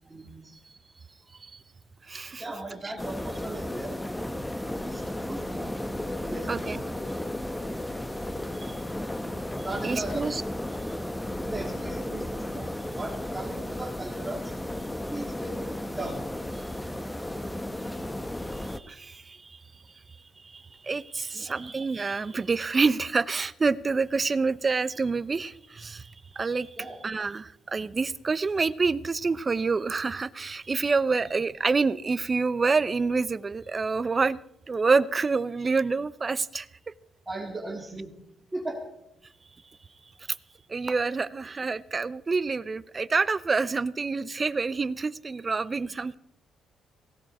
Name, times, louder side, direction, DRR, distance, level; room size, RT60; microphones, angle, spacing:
voice 1, 0.1-0.6 2.4-4.0 4.8-5.7 6.2-6.8 9.6-10.3 11.4-14.4 15.1-16.2 21.3-21.6 26.8-27.0 31.1-31.2 37.3-38.1 38.5-38.8, right 2 dB, 15° right, 0 dB, 2.9 m, -37 dB
voice 2, 2.1-2.4 2.8-2.9 6.5-6.8 8.6-8.8 9.8-10.4 18.6-19.6 20.4-26.7 27.0-34.4 34.7-36.7 40.7-46.2, right 4 dB, 30° right, 16 dB, 0.6 m, -27 dB
sound 1, 3.0-18.8, left 1 dB, 10° left, 1.0 m, -34 dB
sound 2, 5.9-10.5, left 2 dB, 55° left, 5.0 m, -47 dB
17.5 x 16.5 x 4.3 m, 0.81 s
cardioid pair, 90°, 0 cm